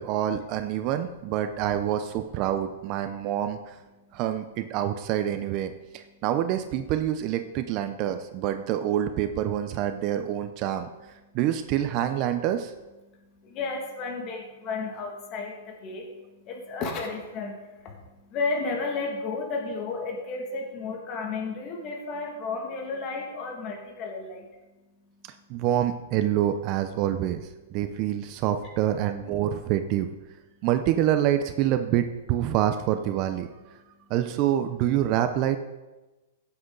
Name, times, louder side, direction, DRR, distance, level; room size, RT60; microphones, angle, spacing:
voice 1, 0.0-3.8 4.1-10.9 11.3-12.7 25.5-30.1 30.6-33.5 34.1-35.6, right 11 dB, 35° right, 8 dB, 0.7 m, -26 dB
voice 2, 13.1-24.5, left 4 dB, 30° left, 1 dB, 2.2 m, -33 dB
16.0 x 7.9 x 3.9 m, 1.1 s
hypercardioid pair, 150°, 0 cm